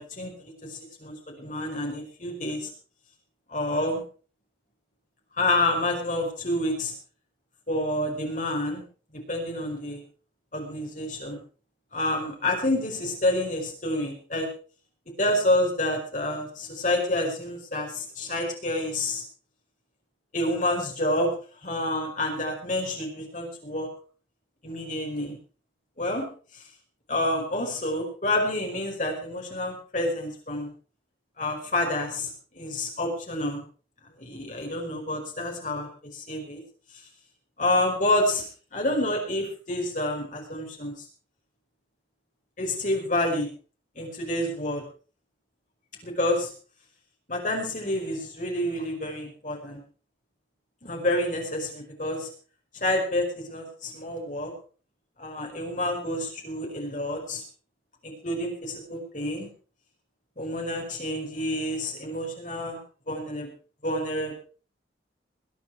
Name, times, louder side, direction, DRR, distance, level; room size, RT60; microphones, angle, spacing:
voice 1, 0.0-2.7 3.5-4.0 5.4-6.9 7.7-8.8 9.1-10.0 10.5-11.4 11.9-14.5 15.2-19.2 20.3-21.4 21.6-23.9 24.6-25.4 26.0-26.3 26.5-26.6 27.1-30.7 31.4-33.6 34.2-36.6 37.6-38.4 38.7-41.1 42.6-43.5 44.0-44.8 46.0-46.5 47.3-49.8 50.8-52.3 52.7-54.5 55.2-57.4 58.0-59.5 60.4-62.8 63.1-63.5 63.8-64.4, left 1 dB, 45° left, 1 dB, 5.2 m, -28 dB
21.5 x 10.0 x 4.7 m, 0.40 s
head